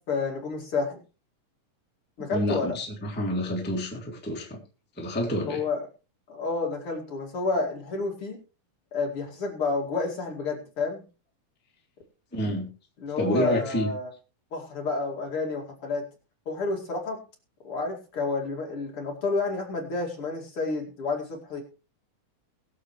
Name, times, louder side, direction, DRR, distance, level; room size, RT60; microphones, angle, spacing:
voice 1, 0.1-1.0 2.2-2.8 5.5-5.8 6.3-8.4 8.9-11.0 13.0-14.1 14.5-16.0 16.5-17.2 17.6-21.6, left 3 dB, 45° left, 3.1 m, -30 dB
voice 2, 2.3-4.6 5.0-5.6 12.3-12.7 13.2-13.9, equal, 5° left, 1.8 m, -28 dB
22.0 x 7.4 x 3.2 m
omnidirectional pair, 3.8 m